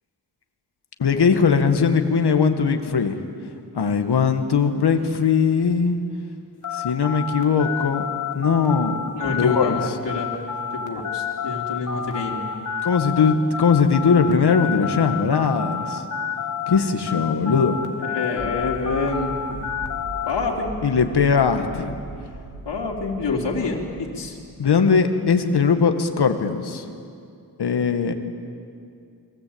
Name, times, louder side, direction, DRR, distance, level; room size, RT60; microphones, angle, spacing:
voice 1, 1.0-3.2 3.7-6.0 6.7-8.0 8.3-9.0 9.2-10.0 12.8-16.0 16.7-17.8 20.8-22.0 24.6-26.9 27.6-28.1, left 5 dB, 70° left, 6 dB, 2.0 m, -20 dB
sound 1, 6.6-16.8 17.1-20.3, left 7 dB, 45° left, 2.2 m, -29 dB
voice 2, 9.1-10.3 10.7-12.4 18.0-19.6 20.2-20.7 22.7-23.8 24.2-24.4, left 4 dB, 90° left, -2 dB, 3.7 m, -27 dB
sound 2, 18.4-24.6, right 3 dB, 90° right, 3.5 m, -39 dB
30.0 x 22.5 x 8.9 m, 2.5 s
wide cardioid pair, 150°, 41 cm